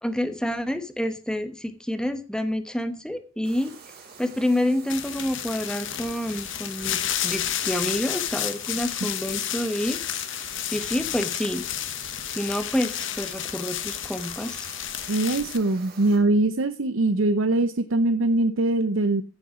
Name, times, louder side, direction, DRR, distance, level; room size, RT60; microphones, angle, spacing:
voice 1, 0.0-3.7 4.2-10.0 10.7-11.7 12.3-14.7, left 1 dB, 5° left, 10 dB, 1.0 m, -28 dB
sound 1, 3.4-16.2, right 5 dB, 50° right, 5.4 m, -47 dB
sound 2, 4.9-15.6, left 11 dB, 65° left, 1.2 m, -31 dB
voice 2, 15.1-19.2, right 2 dB, 70° right, 11 dB, 0.7 m, -22 dB
15.0 x 7.0 x 4.9 m, 0.36 s
head